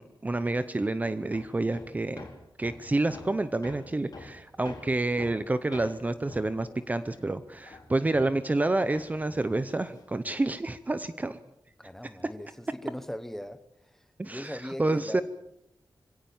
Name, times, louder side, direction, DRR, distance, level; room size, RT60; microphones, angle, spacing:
voice 1, 0.0-2.3 2.6-11.4 14.2-15.2, right 2 dB, 20° right, 12 dB, 0.7 m, -29 dB
Hammer, 1.3-8.6 8.9-10.7, left 3 dB, 50° left, 4.7 m, -48 dB
voice 2, 11.8-15.2, equal, 5° left, 12 dB, 1.1 m, -40 dB
25.0 x 17.0 x 7.2 m, 0.82 s
wide cardioid pair, 165°, 8 cm